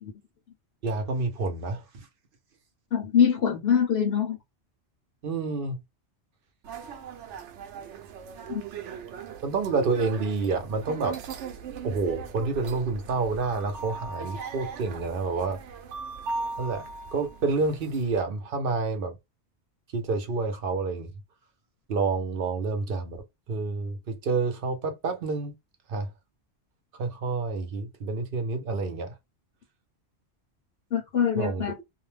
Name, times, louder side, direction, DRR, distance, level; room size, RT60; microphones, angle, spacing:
voice 1, 0.8-2.1 5.2-5.8 9.4-11.2 11.8-15.6 16.6-16.8 17.1-19.2 19.9-21.1 21.9-23.2 23.5-25.6 25.9-26.1 27.0-29.2 31.4-31.8, right 4 dB, 55° right, 0.8 m, -28 dB
voice 2, 2.9-4.4 8.5-8.6 30.9-31.7, left 7 dB, 65° left, 0.9 m, -24 dB
sound 1, 6.6-18.2, right 5 dB, 85° right, 0.9 m, -39 dB
2.5 x 2.1 x 3.2 m
omnidirectional pair, 1.2 m